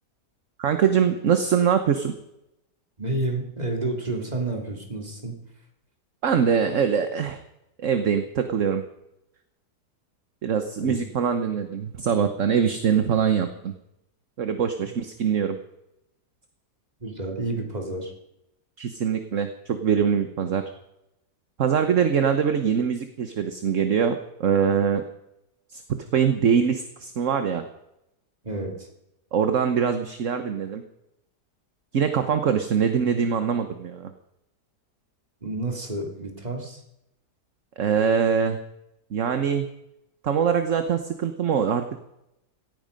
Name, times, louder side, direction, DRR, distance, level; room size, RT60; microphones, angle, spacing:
voice 1, 0.6-2.1 6.2-7.4 7.8-8.8 10.4-13.7 14.4-15.6 18.8-20.6 21.6-25.0 25.7-27.7 29.3-30.8 31.9-34.1 37.8-38.6 39.1-39.7 40.2-41.8, right 7 dB, 55° right, 8 dB, 1.3 m, -23 dB
voice 2, 3.0-5.4 10.8-11.0 17.0-18.1 28.4-28.9 35.4-36.8, right 2 dB, 25° right, 1 dB, 3.0 m, -30 dB
17.5 x 15.0 x 5.2 m, 0.85 s
omnidirectional pair, 1.8 m